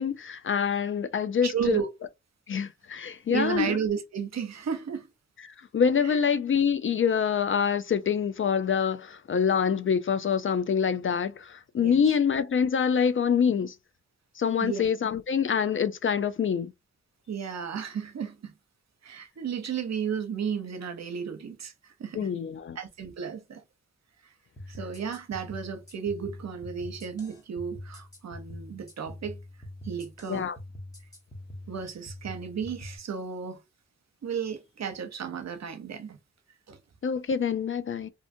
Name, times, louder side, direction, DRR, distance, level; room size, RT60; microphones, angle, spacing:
voice 1, 0.0-1.8 2.5-3.7 5.4-13.7 14.4-16.7 22.1-22.8 30.3-30.6 37.0-38.1, left 7 dB, 45° left, 0.4 m, -26 dB
voice 2, 1.4-1.9 3.3-5.1 6.0-6.2 11.8-12.0 14.6-14.9 17.3-18.5 19.0-22.3 22.8-23.6 24.7-29.4 29.8-30.4 31.7-33.6 34.2-36.2 36.7-36.8, right 7 dB, 60° right, 0.7 m, -33 dB
sound 1, 24.6-33.0, left 1 dB, 10° left, 1.0 m, -44 dB
2.6 x 2.5 x 2.5 m
cardioid pair, 45°, 30 cm